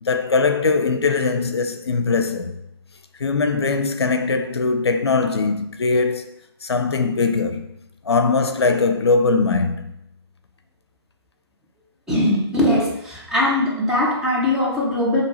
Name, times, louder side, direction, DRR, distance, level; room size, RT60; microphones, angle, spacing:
voice 1, 0.0-2.6 3.2-7.7 8.0-9.9, left 4 dB, 80° left, 0.5 m, -21 dB
voice 2, 12.1-15.2, left 1 dB, 5° right, 0.8 m, -20 dB
4.3 x 2.9 x 4.1 m
figure-of-eight pair, 140°, 14 cm